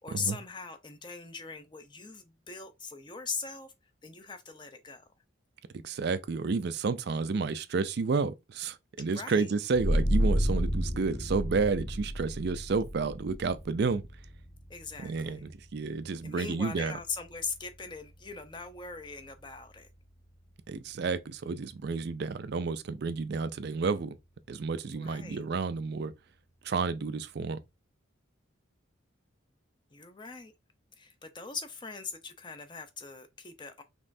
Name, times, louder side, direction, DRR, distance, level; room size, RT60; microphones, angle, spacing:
voice 1, 0.0-3.7 4.0-5.1 9.1-9.5 14.7-15.5 16.2-19.9 24.9-25.4 29.9-30.5 31.0-33.8, left 5 dB, 25° left, 0.5 m, -40 dB
voice 2, 5.8-14.0 15.0-17.0 20.7-24.2 24.5-26.1 26.6-27.6, right 4 dB, 50° right, 0.4 m, -31 dB
sound 1, 9.7-21.0, equal, 50° left, 1.4 m, -34 dB
5.3 x 3.1 x 2.6 m
head